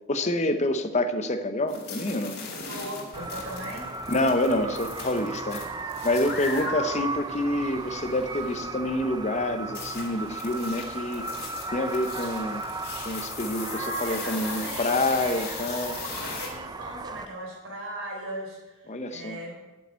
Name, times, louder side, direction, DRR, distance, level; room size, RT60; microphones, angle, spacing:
voice 1, 0.1-2.4 4.1-5.6 6.0-11.3 11.7-12.6 13.0-16.0 18.9-19.4, left 1 dB, 30° left, 8 dB, 0.7 m, -27 dB
sound 1, 1.7-8.6 9.7-16.5, left 5 dB, 45° left, 2.4 m, -39 dB
voice 2, 2.7-4.0 6.4-6.7 13.5-15.4 16.0-19.6, right 1 dB, 70° right, 0 dB, 3.7 m, -38 dB
sound 2, 3.1-17.3, right 3 dB, 20° right, 0.4 m, -36 dB
8.6 x 7.1 x 8.3 m, 1.2 s
head